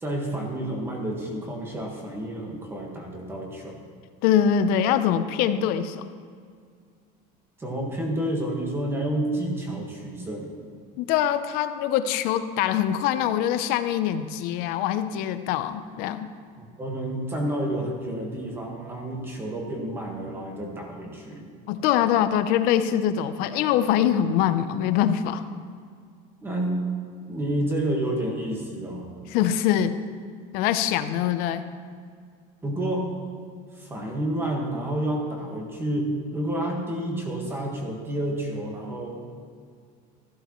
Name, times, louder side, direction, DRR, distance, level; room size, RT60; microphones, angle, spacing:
voice 1, 0.0-3.8 7.6-10.5 16.8-21.4 26.4-26.9 27.3-29.1 32.6-33.2 33.7-39.2, right 1 dB, 10° right, 0 dB, 1.5 m, -29 dB
voice 2, 4.2-6.0 11.0-16.3 21.7-25.4 29.3-30.0 30.5-31.6, left 10 dB, 55° left, 11 dB, 0.6 m, -23 dB
14.5 x 11.5 x 3.0 m, 2.1 s
cardioid pair, 175°, 19 cm